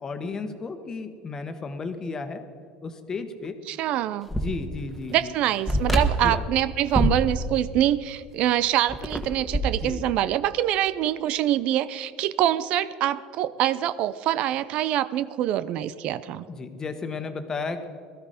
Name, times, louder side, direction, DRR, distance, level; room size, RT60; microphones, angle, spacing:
voice 1, 0.0-2.4 2.8-3.6 4.3-5.3 6.2-6.4 9.8-10.0 16.5-17.9, left 4 dB, 25° left, 8 dB, 1.4 m, -33 dB
voice 2, 3.7-4.3 5.1-16.4, right 12 dB, 60° right, 16 dB, 0.5 m, -25 dB
sound 1, 4.3-4.5 4.8-4.9 5.7-6.4 6.9-7.2 8.6-9.9, right 1 dB, ahead, 1.6 m, -24 dB
17.5 x 13.5 x 5.1 m, 2.2 s
cardioid pair, 125°, 2 cm